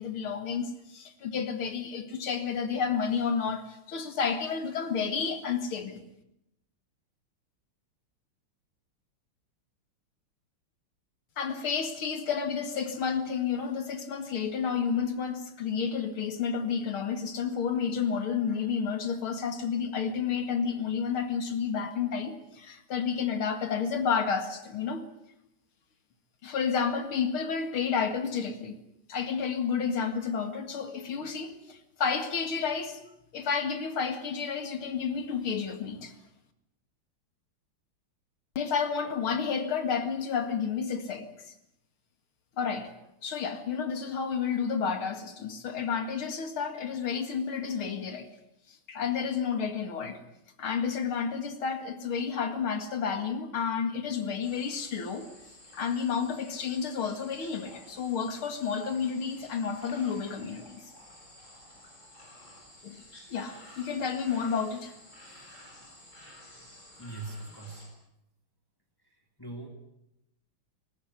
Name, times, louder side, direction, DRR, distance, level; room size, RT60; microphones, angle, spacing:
voice 1, 0.0-6.0 11.4-25.0 26.4-28.8 29.1-33.0 33.3-36.1 38.6-41.3 42.6-42.9 43.2-48.3 48.9-50.2 50.6-55.3 55.7-60.8 62.8-63.0 63.3-64.9, left 6 dB, 75° left, 8 dB, 2.9 m, -31 dB
sound 1, 54.4-67.9, left 1 dB, 35° left, 6.9 m, -52 dB
voice 2, 67.0-67.9 69.4-69.7, right 3 dB, 10° left, 3 dB, 2.8 m, -40 dB
19.0 x 19.0 x 9.8 m, 0.85 s
omnidirectional pair, 2.3 m